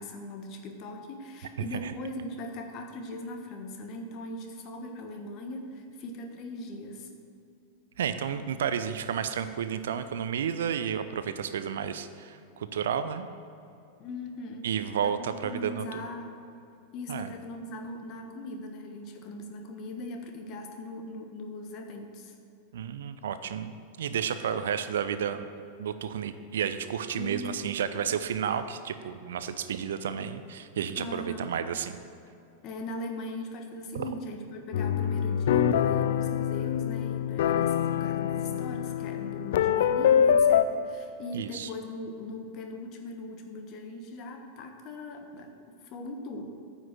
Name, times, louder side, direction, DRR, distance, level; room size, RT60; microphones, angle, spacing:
voice 1, 0.0-7.1 14.0-14.7 15.0-16.4 16.9-22.3 27.1-27.7 31.0-31.5 32.6-46.4, left 1 dB, 40° left, 4 dB, 1.2 m, -40 dB
voice 2, 8.0-13.3 14.6-16.0 17.1-17.3 22.7-23.7 24.0-25.5 25.8-31.9 33.9-34.1 41.3-41.7, right 8 dB, 60° right, 11 dB, 0.5 m, -31 dB
sound 1, 34.7-40.6, left 9 dB, 55° left, 0.4 m, -25 dB
9.3 x 6.0 x 7.5 m, 2.6 s
figure-of-eight pair, 90°, 0 cm